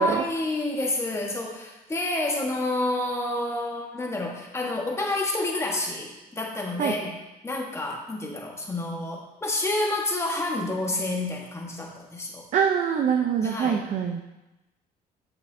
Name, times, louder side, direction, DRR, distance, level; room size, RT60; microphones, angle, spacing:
voice 1, 0.0-7.1 7.4-12.4 13.4-13.8, left 2 dB, 15° left, 0 dB, 1.3 m, -29 dB
voice 2, 12.5-14.2, right 7 dB, 50° right, 3 dB, 0.6 m, -24 dB
8.1 x 6.8 x 2.7 m, 1.0 s
cardioid pair, 110°, 17 cm